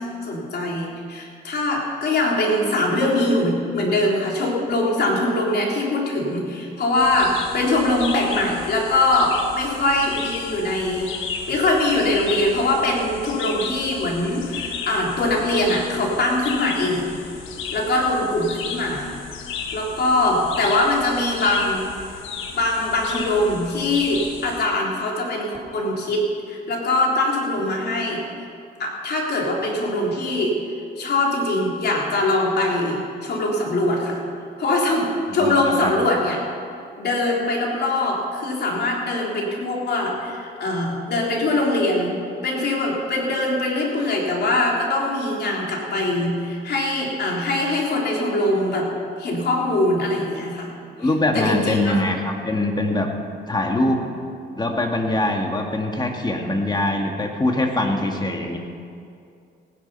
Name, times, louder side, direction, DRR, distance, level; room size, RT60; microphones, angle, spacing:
voice 1, 0.0-11.1 11.5-17.2 17.7-19.1 19.7-21.8 22.5-28.2 28.8-30.6 31.0-34.2 34.6-36.4 37.0-42.2 42.4-48.9 49.2-50.7 51.0-51.1 51.3-52.0, left 2 dB, 55° left, -2 dB, 3.5 m, -22 dB
sound 1, 7.0-24.7, left 6 dB, 90° left, 1.3 m, -34 dB
voice 2, 35.4-35.9 51.0-53.1 53.5-54.1 54.5-58.6, left 1 dB, 20° left, 2 dB, 2.0 m, -23 dB
17.0 x 10.5 x 5.5 m, 2.4 s
cardioid pair, 90°, 20 cm